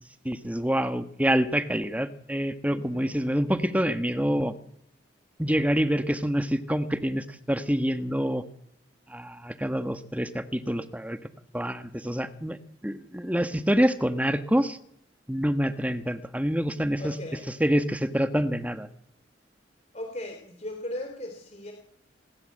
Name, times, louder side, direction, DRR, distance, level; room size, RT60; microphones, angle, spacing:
voice 1, 0.2-4.5 5.4-8.4 9.1-11.2 11.5-12.6 12.8-14.8 15.3-17.1 17.6-18.9, equal, 10° right, 10 dB, 1.4 m, -26 dB
voice 2, 2.7-3.1 16.9-17.5 19.9-21.7, left 1 dB, 35° left, 3 dB, 3.8 m, -38 dB
29.0 x 20.5 x 7.8 m, 0.74 s
head